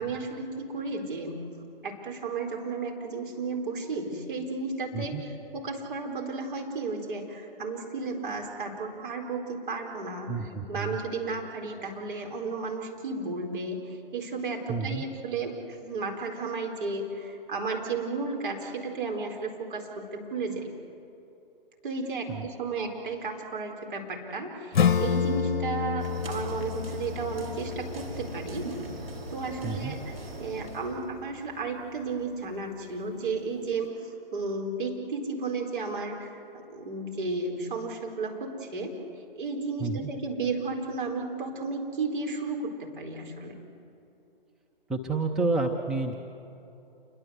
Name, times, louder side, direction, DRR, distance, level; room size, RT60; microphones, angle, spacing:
voice 1, 0.0-1.4 1.8-20.7 21.8-29.0 29.3-30.0 30.4-43.6, right 3 dB, 60° right, 2 dB, 4.5 m, -33 dB
voice 2, 10.3-11.0 14.7-15.0 22.3-22.5 29.6-30.0 39.8-40.1 44.9-46.1, right 3 dB, ahead, 1 dB, 0.6 m, -30 dB
Acoustic guitar / Strum, 24.7-30.0, left 7 dB, 55° left, 1.1 m, -29 dB
sound 1, 26.0-31.1, right 2 dB, 80° right, 4.6 m, -41 dB
28.0 x 22.5 x 8.1 m, 2.9 s
figure-of-eight pair, 135°, 29 cm